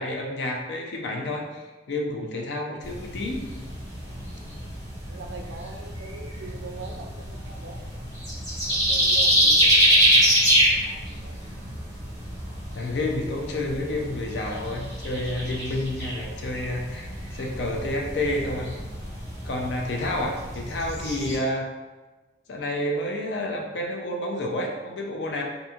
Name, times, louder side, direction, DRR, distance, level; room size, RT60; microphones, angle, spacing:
voice 1, 0.0-3.4 12.8-18.8 19.4-21.7 22.5-25.4, left 1 dB, 65° left, 0 dB, 0.4 m, -29 dB
sound 1, 2.8-21.4, equal, 20° left, 1.4 m, -26 dB
voice 2, 5.1-7.9 8.7-11.4 19.9-20.2, right 4 dB, 70° right, 4 dB, 0.3 m, -43 dB
2.8 x 2.6 x 2.3 m, 1.2 s
head